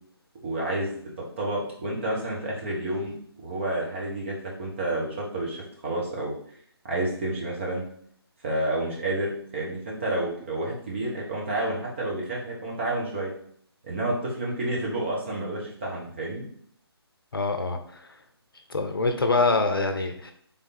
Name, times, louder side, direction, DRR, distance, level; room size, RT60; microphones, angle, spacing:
voice 1, 0.4-3.1 3.4-6.4 6.8-7.8 8.4-13.3 13.8-16.5, right 1 dB, 30° right, -3 dB, 1.2 m, -30 dB
voice 2, 17.3-18.1 18.7-20.3, left 3 dB, 60° left, 6 dB, 0.7 m, -25 dB
3.6 x 3.5 x 4.2 m, 0.62 s
figure-of-eight pair, 145°, 14 cm